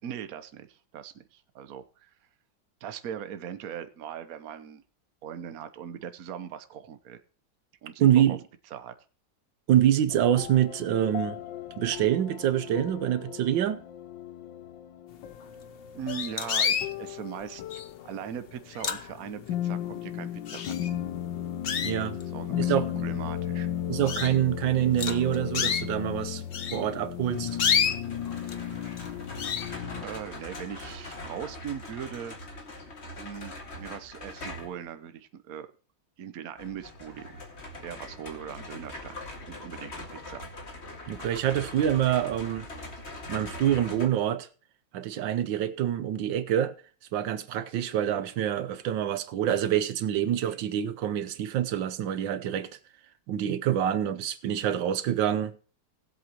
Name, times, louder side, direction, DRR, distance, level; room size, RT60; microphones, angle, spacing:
voice 1, 0.0-2.1 2.8-4.8 5.2-7.2 7.8-8.4 8.7-8.9 15.9-21.0 22.2-23.7 30.0-32.4 33.2-35.7 36.2-37.4 37.8-39.2 39.5-40.4, right 9 dB, 55° right, 1.3 m, -40 dB
voice 2, 8.0-8.4 9.7-11.4 11.8-13.8 21.8-22.2 22.6-22.9 23.9-26.4 26.7-27.6 41.1-42.7 43.3-44.5 44.9-46.7 47.1-52.7 53.3-55.5, right 11 dB, 80° right, 1.5 m, -26 dB
sound 1, 10.1-30.1, left 10 dB, 80° left, 1.5 m, -35 dB
sound 2, 15.4-15.5 16.1-16.9 17.7-18.1 18.5-19.5 19.9-20.0 20.5-21.1 21.6-22.4 23.0-23.1 23.5-23.6 24.1-24.4 25.0-25.9 26.5-28.6 28.9-29.1 29.4-29.7, left 7 dB, 55° left, 0.6 m, -29 dB
sound 3, 27.3-34.9 36.6-44.1, left 2 dB, 35° left, 2.1 m, -42 dB
19.5 x 7.9 x 2.9 m
omnidirectional pair, 2.0 m